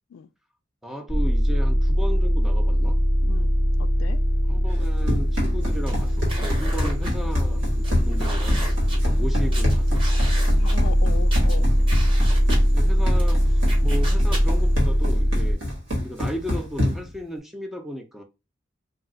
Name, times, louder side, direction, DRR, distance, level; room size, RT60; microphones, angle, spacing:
voice 1, 0.8-3.0 4.5-8.7 8.9-9.9 12.7-15.6 16.0-18.2, equal, ahead, 0.5 m, -35 dB
sound 1, 1.1-15.5, equal, 60° right, 1.2 m, -21 dB
voice 2, 3.2-3.5 3.8-4.2 10.6-11.7, left 7 dB, 90° left, 0.3 m, -37 dB
Run, 4.7-17.2, left 1 dB, 75° right, 1.4 m, -28 dB
sound 2, 5.6-14.8, right 1 dB, 25° right, 1.0 m, -34 dB
2.4 x 2.3 x 3.8 m
head